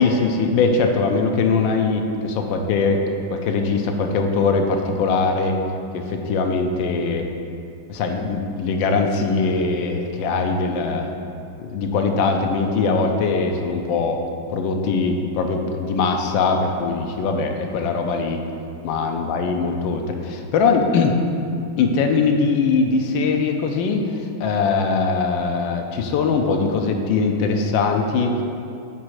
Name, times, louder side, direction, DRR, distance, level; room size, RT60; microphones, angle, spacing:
voice 1, 0.0-3.0 3.3-5.6 5.9-7.3 7.9-11.1 11.6-14.2 14.5-18.4 18.8-21.2 21.8-28.4, left 4 dB, 75° left, 4 dB, 1.3 m, -21 dB
7.6 x 4.1 x 4.7 m, 2.5 s
omnidirectional pair, 2.2 m